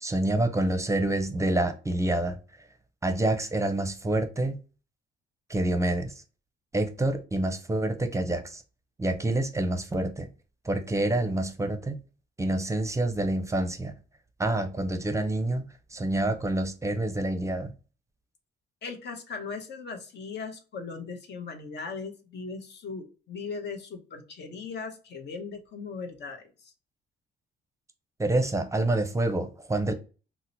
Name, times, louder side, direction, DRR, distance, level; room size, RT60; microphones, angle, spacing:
voice 1, 0.0-2.4 3.0-4.6 5.5-6.1 6.7-8.6 9.0-10.3 10.6-12.0 12.4-13.9 14.4-15.6 15.9-17.7 28.2-29.9, right 1 dB, 15° right, 0.6 m, -27 dB
voice 2, 18.8-26.7, left 4 dB, 60° left, 0.8 m, -38 dB
2.8 x 2.0 x 3.8 m
cardioid pair, 90°, 20 cm